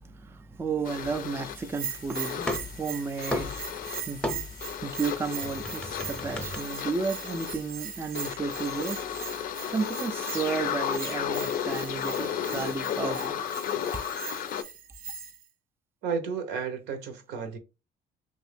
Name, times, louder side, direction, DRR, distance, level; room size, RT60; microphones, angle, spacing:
voice 1, 0.0-4.2 4.8-9.2 9.7-13.4, right 4 dB, 15° right, 0.3 m, -33 dB
sound 1, 0.9-14.6, left 9 dB, 55° left, 0.4 m, -34 dB
sound 2, 1.0-2.0 2.2-4.8 5.0-6.6, left 1 dB, 5° left, 0.7 m, -35 dB
Bell, 1.7-15.4, right 8 dB, 55° right, 0.6 m, -40 dB
voice 2, 16.0-17.6, right 6 dB, 90° right, 0.9 m, -32 dB
3.0 x 2.6 x 3.3 m
cardioid pair, 110°, 17 cm